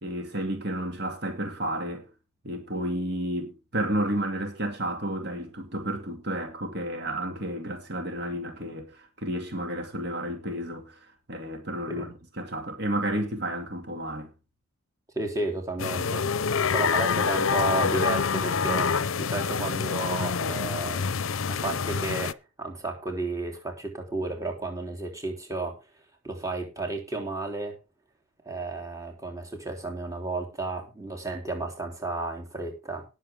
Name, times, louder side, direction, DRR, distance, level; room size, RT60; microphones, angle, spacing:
voice 1, 0.0-2.1 2.4-14.3, right 1 dB, 50° right, 2.3 m, -31 dB
voice 2, 15.1-16.2 16.7-21.2 21.5-22.3 22.6-25.8 26.2-27.8 28.4-33.0, right 2 dB, 15° right, 3.4 m, -32 dB
sound 1, 15.8-22.3, left 6 dB, 70° left, 0.6 m, -26 dB
19.0 x 7.5 x 3.6 m
head